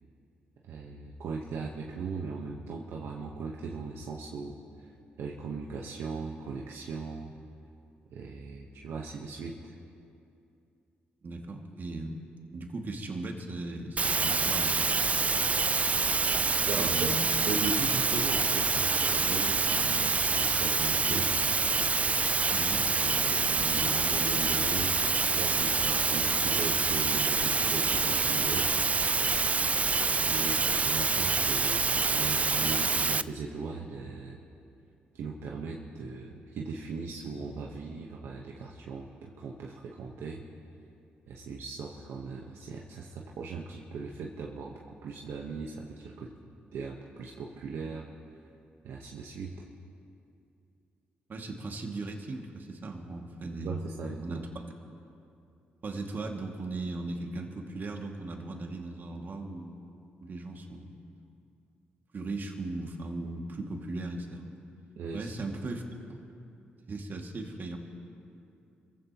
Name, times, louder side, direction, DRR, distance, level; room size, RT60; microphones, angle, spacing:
voice 1, 0.7-4.9 5.2-7.3 8.1-9.7 16.6-17.1 17.5-21.4 23.0-25.0 25.3-28.7 30.2-34.4 35.1-40.4 41.3-46.3 46.7-48.1 48.8-49.6 53.6-54.5 65.0-65.3, right 4 dB, 75° right, -1 dB, 1.1 m, -38 dB
voice 2, 11.2-12.2 12.5-14.8 16.8-17.2 22.5-22.8 51.3-53.7 54.2-54.4 55.8-59.8 60.2-60.9 62.1-64.5 65.1-65.8 66.1-66.2 66.9-67.8, right 2 dB, 50° right, 2 dB, 2.1 m, -37 dB
sound 1, 14.0-33.2, right 4 dB, 35° right, 0.4 m, -26 dB
26.0 x 15.5 x 3.0 m, 2.6 s
supercardioid pair, 60°, 4 cm